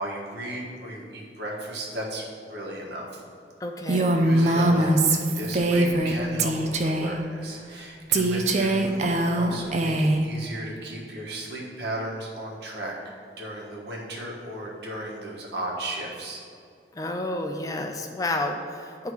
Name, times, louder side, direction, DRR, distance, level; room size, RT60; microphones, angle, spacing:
voice 1, 0.0-3.2 4.2-12.9 13.4-16.4, right 1 dB, 70° right, -3 dB, 1.4 m, -35 dB
voice 2, 3.6-4.1 16.9-19.1, left 2 dB, 20° left, 4 dB, 0.4 m, -30 dB
Female speech woman speaking, 3.9-6.1 6.4-7.1 8.1-10.2, right 1 dB, 40° right, 0.5 m, -22 dB
10.5 x 3.6 x 4.6 m, 2.3 s
head